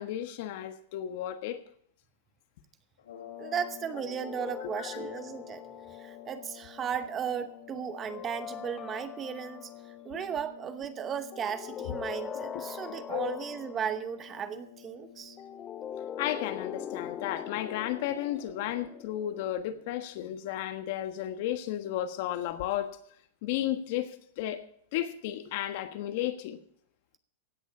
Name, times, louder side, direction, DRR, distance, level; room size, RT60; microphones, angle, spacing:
voice 1, 0.0-1.6 4.6-5.1 10.1-10.2 13.1-13.5 16.2-23.0 23.4-24.6 24.9-26.6, left 12 dB, 50° left, 10 dB, 1.4 m, -33 dB
sound 1, 3.0-18.1, left 11 dB, 85° left, 3.1 m, -49 dB
voice 2, 3.4-5.6 5.9-9.7 10.0-15.4, right 8 dB, 20° right, 12 dB, 0.8 m, -36 dB
sound 2, 3.9-6.4 8.1-9.9 11.3-14.0 15.4-19.9, left 8 dB, 20° left, 0.5 m, -42 dB
16.0 x 9.4 x 5.5 m, 0.64 s
supercardioid pair, 150°, 0 cm